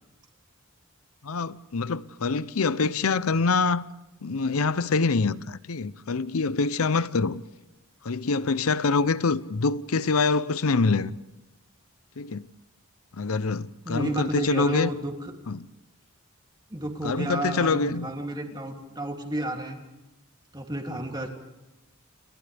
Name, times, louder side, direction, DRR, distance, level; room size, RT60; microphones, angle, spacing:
voice 1, 1.2-3.8 4.2-7.4 8.0-11.2 12.2-12.5 13.1-14.9 15.5-15.7 17.0-18.1, left 4 dB, 85° left, 0.7 m, -25 dB
voice 2, 13.8-15.3 16.7-19.8 20.5-21.3, right 1 dB, 20° right, 2.9 m, -32 dB
30.0 x 29.0 x 3.5 m
head